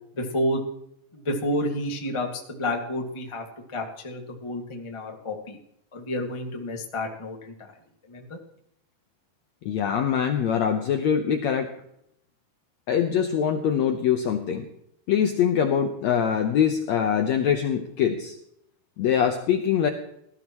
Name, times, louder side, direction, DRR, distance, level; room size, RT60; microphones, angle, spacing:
voice 1, 0.2-0.6 1.1-3.4 3.7-5.6 5.9-7.7 8.1-8.4, left 1 dB, 35° left, 1 dB, 0.4 m, -30 dB
voice 2, 9.6-11.7 12.9-14.7 15.1-18.4 19.0-19.9, left 8 dB, 75° left, 5 dB, 1.6 m, -23 dB
18.5 x 13.0 x 3.0 m, 0.75 s
omnidirectional pair, 4.3 m